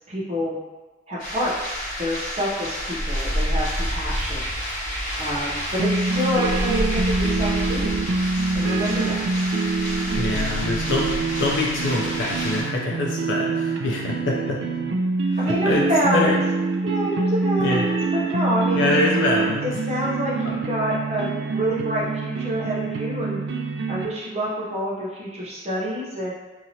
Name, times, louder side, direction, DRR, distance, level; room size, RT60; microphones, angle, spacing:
voice 1, 0.1-0.5 1.1-4.4 5.2-8.0 8.5-9.3 15.4-16.3 16.8-19.0 19.6-23.4 23.9-26.3, equal, 35° right, -5 dB, 0.6 m, -27 dB
sound 1, 1.2-12.6, equal, 45° left, 1.1 m, -28 dB
sound 2, 5.8-24.1, right 3 dB, 70° right, 0.3 m, -25 dB
voice 2, 10.2-11.1 11.4-14.6 15.3-15.9 16.1-16.4 17.6-17.8 18.7-19.7 20.4-20.5, left 2 dB, 80° left, -2 dB, 0.4 m, -24 dB
2.8 x 2.8 x 2.7 m, 1.2 s
head